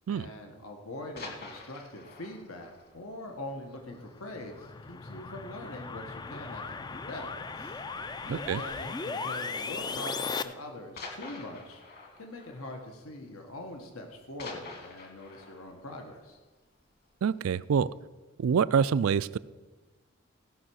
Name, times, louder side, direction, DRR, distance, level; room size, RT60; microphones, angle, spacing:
voice 1, 0.1-7.8 8.2-11.8 12.2-16.4, left 1 dB, 85° left, 3 dB, 1.4 m, -43 dB
sound 1, 0.9-4.4 4.8-4.9 5.3-5.5 5.8-5.9 6.7-7.1 8.4-8.6 9.5-9.6 11.0-13.7 14.0-17.1 17.6-17.7, left 3 dB, 45° left, 1.7 m, -47 dB
sound 2, 3.9-10.4, left 4 dB, 20° left, 0.3 m, -37 dB
voice 2, 8.3-8.6 17.2-17.9 18.4-19.4, right 7 dB, 75° right, 18 dB, 0.3 m, -26 dB
16.5 x 5.8 x 6.2 m, 1.3 s
head